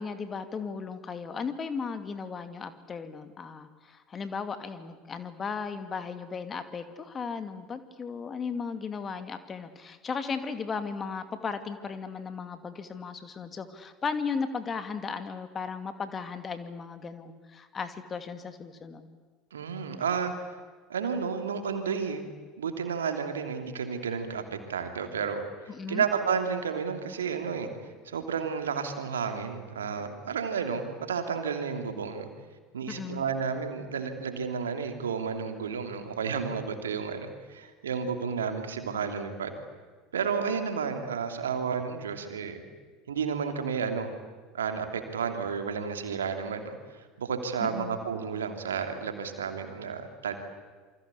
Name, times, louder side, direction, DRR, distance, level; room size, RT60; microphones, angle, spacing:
voice 1, 0.0-19.1 25.7-26.0 32.9-33.2 47.6-48.0, left 5 dB, 30° left, 10 dB, 2.5 m, -36 dB
voice 2, 19.5-20.5 20.9-22.2 22.6-25.4 25.9-27.7 28.0-32.3 32.7-39.6 40.1-42.6 43.1-44.1 44.5-50.4, right 6 dB, 75° right, 6 dB, 2.9 m, -31 dB
28.0 x 25.0 x 8.5 m, 1.4 s
figure-of-eight pair, 70°, 0 cm